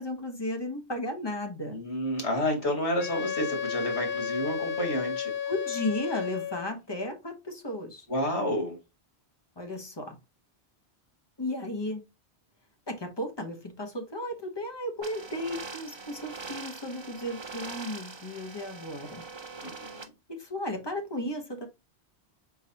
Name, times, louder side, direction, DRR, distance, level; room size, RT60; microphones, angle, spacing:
voice 1, 0.0-1.8 5.5-8.1 9.6-10.2 11.4-12.0 12.9-19.2 20.3-21.7, left 1 dB, 25° left, 1.2 m, -34 dB
voice 2, 1.7-5.3 8.1-8.8 19.6-20.1, equal, 75° left, 2.1 m, -30 dB
Wind instrument woodwind instrument, 3.0-6.7, left 8 dB, 55° left, 0.7 m, -33 dB
sound 1, 15.0-20.0, right 4 dB, 30° right, 0.7 m, -42 dB
4.5 x 3.9 x 2.8 m
omnidirectional pair, 1.1 m